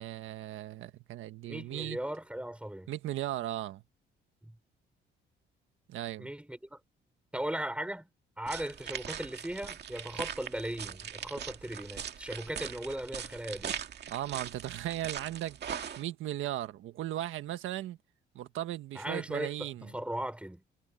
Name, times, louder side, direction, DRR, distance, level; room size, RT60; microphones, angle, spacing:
voice 1, 0.0-2.0 2.9-3.8 5.9-6.3 14.1-15.6 16.0-18.0 18.3-19.9, right 13 dB, 85° right, 1.6 m, -37 dB
voice 2, 1.5-2.9 4.4-4.6 6.2-6.8 7.3-8.1 8.4-13.8 19.0-20.6, right 1 dB, 5° right, 5.1 m, -38 dB
sound 1, 8.5-16.0, right 8 dB, 60° right, 2.2 m, -41 dB
cardioid pair, 90°, 20 cm